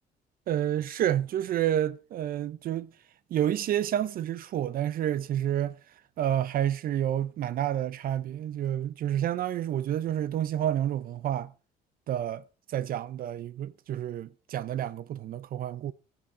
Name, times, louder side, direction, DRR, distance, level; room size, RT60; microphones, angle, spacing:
voice 1, 0.5-2.9 3.3-5.8 6.2-11.5 12.1-15.9, right 11 dB, 60° right, 0.7 m, -29 dB
15.5 x 8.1 x 4.8 m
cardioid pair, 110°, 17 cm